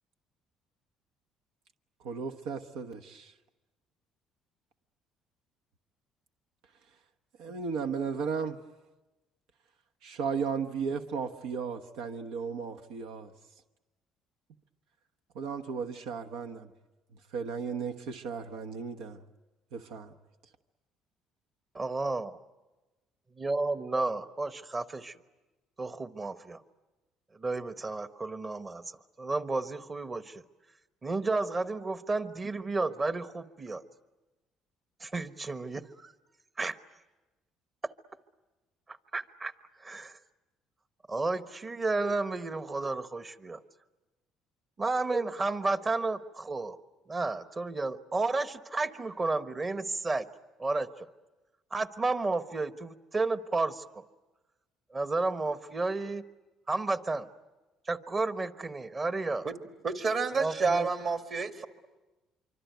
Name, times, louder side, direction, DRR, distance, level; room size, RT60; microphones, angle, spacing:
voice 1, 2.0-3.3 7.4-8.6 10.0-13.3 15.3-16.7 17.3-19.2 19.7-20.1, right 6 dB, 85° right, 1.2 m, -35 dB
voice 2, 21.7-22.4 23.4-25.2 25.8-26.6 27.4-30.4 31.0-33.8 35.0-36.1 36.6-36.8 39.1-39.5 39.8-40.2 41.1-43.6 44.8-46.8 47.1-50.3 50.6-51.1 51.7-54.0 54.9-56.2 56.7-57.3 57.9-59.5 60.4-60.9, right 3 dB, 25° right, 1.2 m, -32 dB
voice 3, 59.8-61.7, right 4 dB, 40° right, 2.2 m, -29 dB
25.5 x 25.0 x 9.3 m
cardioid pair, 110°, 0 cm